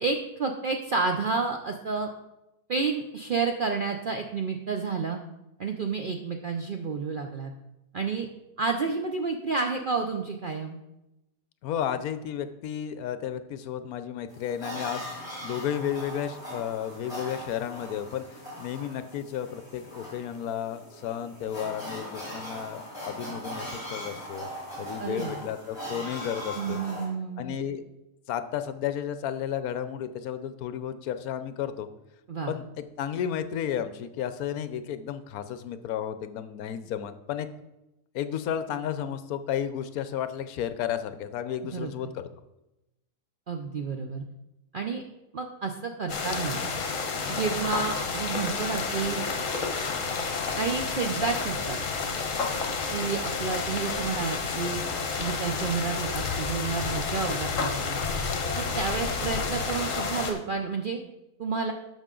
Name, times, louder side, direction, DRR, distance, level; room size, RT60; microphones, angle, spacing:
voice 1, 0.0-2.1 2.7-5.2 5.6-7.5 7.9-8.3 8.6-10.8 25.0-25.4 26.6-27.6 32.3-32.5 41.7-41.9 43.5-44.2 44.7-45.0 45.3-46.7 47.3-49.3 50.6-51.8 52.9-54.8 55.2-58.0 58.5-61.0 61.4-61.7, right 4 dB, 75° right, 4 dB, 0.4 m, -30 dB
voice 2, 11.6-24.5 24.8-26.8 27.4-27.8 28.3-31.9 32.5-37.5 38.1-42.3, left 9 dB, 70° left, 11 dB, 1.1 m, -33 dB
sound 1, 14.3-27.1, equal, 15° left, 3.3 m, -40 dB
sound 2, 46.1-60.3, left 4 dB, 55° left, 1.4 m, -30 dB
12.5 x 5.5 x 3.8 m, 0.93 s
omnidirectional pair, 1.7 m